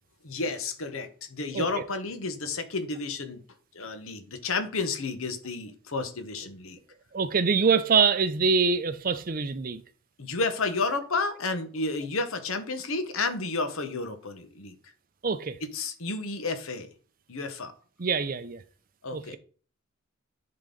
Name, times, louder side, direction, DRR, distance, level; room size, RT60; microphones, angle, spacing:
voice 1, 0.2-3.4 3.7-6.8 10.2-14.8 15.6-16.9 17.3-17.7 19.0-19.4, left 3 dB, 70° left, 1.1 m, -31 dB
voice 2, 7.1-9.8 15.2-15.6 18.0-18.6 19.1-19.2, right 5 dB, 40° right, 0.5 m, -24 dB
10.5 x 3.9 x 3.8 m
head